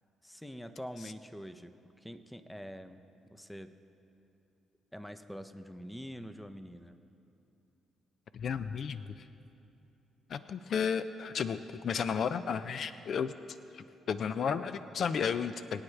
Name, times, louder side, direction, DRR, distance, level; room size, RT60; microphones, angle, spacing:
voice 1, 0.2-3.0 3.3-3.8 4.9-7.0, equal, 5° left, 9 dB, 0.6 m, -45 dB
voice 2, 8.3-9.1 10.3-13.3 13.7-15.8, left 6 dB, 60° left, 12 dB, 0.4 m, -33 dB
22.5 x 8.7 x 3.3 m, 2.9 s
cardioid pair, 90°, 0 cm